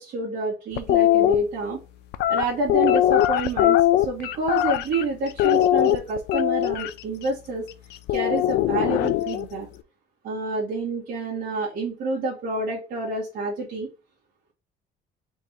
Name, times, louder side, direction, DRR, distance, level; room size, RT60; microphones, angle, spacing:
voice 1, 0.0-1.8 2.3-7.6 8.1-9.7 10.2-13.9, right 3 dB, 45° right, -7 dB, 2.0 m, -28 dB
sound 1, 0.8-1.3 2.1-5.0 5.4-6.9 8.1-9.4, left 13 dB, 70° left, 0.5 m, -20 dB
4.5 x 3.5 x 3.0 m, 0.31 s
cardioid pair, 180°, 18 cm